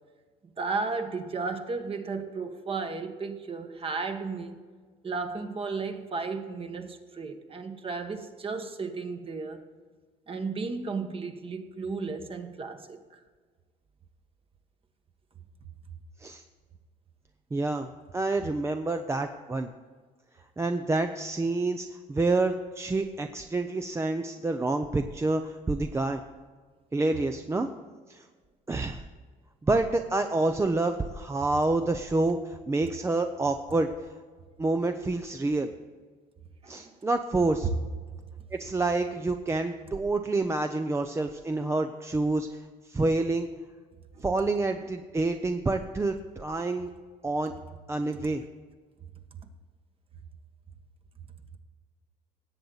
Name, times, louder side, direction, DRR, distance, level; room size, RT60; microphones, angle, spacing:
voice 1, 0.6-4.6 5.0-9.6 10.3-13.0 36.6-36.9 44.1-44.3, right 4 dB, 35° right, 1.3 m, -34 dB
voice 2, 17.5-19.7 20.6-26.2 26.9-27.7 28.1-28.2 28.7-29.0 29.6-33.9 34.6-35.7 36.7-37.7 38.5-42.6 42.9-43.5 44.2-46.9 47.2-47.5 47.9-48.4, right 2 dB, 15° right, 0.6 m, -28 dB
17.5 x 7.8 x 4.0 m
cardioid pair, 110°, 17 cm